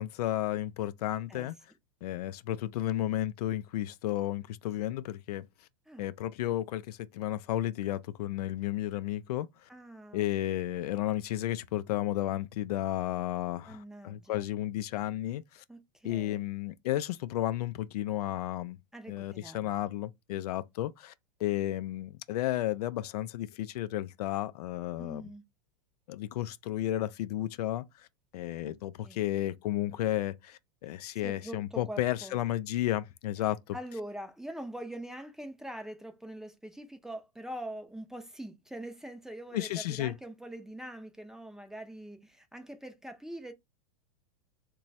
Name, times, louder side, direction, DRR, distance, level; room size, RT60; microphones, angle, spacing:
voice 1, 0.0-1.6 2.0-5.4 6.0-9.5 10.1-15.6 16.0-18.8 19.1-21.1 21.4-25.2 26.1-27.8 28.3-33.8 39.5-40.1, left 14 dB, 75° left, 0.4 m, -33 dB
voice 2, 9.7-10.3 13.7-14.5 15.7-16.5 18.9-19.7 25.0-25.4 28.6-28.7 29.0-29.2 31.2-32.4 33.7-43.5, right 1 dB, ahead, 0.5 m, -43 dB
3.0 x 2.3 x 4.0 m
hypercardioid pair, 120°, 20 cm